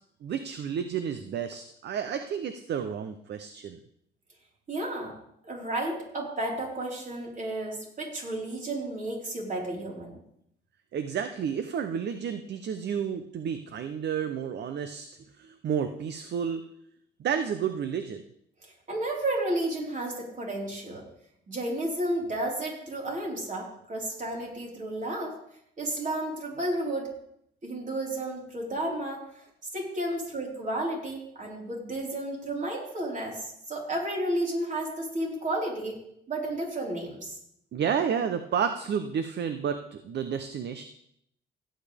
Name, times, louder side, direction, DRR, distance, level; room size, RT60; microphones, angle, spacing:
voice 1, 0.2-3.8 10.9-15.1 15.4-16.6 17.2-18.2 37.7-40.8, right 7 dB, 60° right, 9 dB, 0.8 m, -31 dB
voice 2, 4.7-5.1 5.4-10.1 18.6-21.0 21.5-25.3 25.8-27.1 27.6-29.5 29.7-36.0 36.3-37.4, right 1 dB, 40° right, -3 dB, 4.5 m, -32 dB
16.5 x 8.9 x 3.5 m, 0.74 s
cardioid pair, 90°, 20 cm